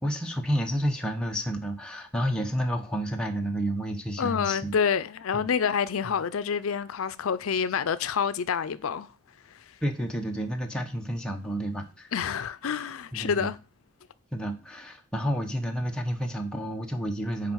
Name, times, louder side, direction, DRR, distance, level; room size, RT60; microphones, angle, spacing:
voice 1, 0.0-4.7 5.3-5.5 6.0-6.1 9.8-12.1 13.1-13.5 14.3-17.5, equal, 5° left, 1.0 m, -30 dB
voice 2, 4.2-9.1 12.1-13.6, left 6 dB, 85° left, 0.5 m, -27 dB
6.7 x 4.9 x 6.3 m
head